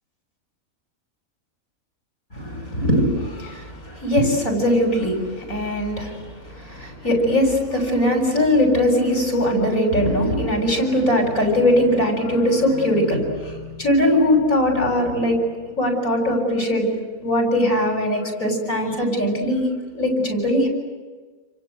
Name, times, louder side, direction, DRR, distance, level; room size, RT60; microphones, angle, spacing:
voice 1, 2.3-15.4 15.8-16.9 17.2-19.7 19.9-20.7, left 1 dB, 75° left, 2 dB, 8.0 m, -20 dB
29.5 x 24.5 x 7.9 m, 1.4 s
omnidirectional pair, 1.5 m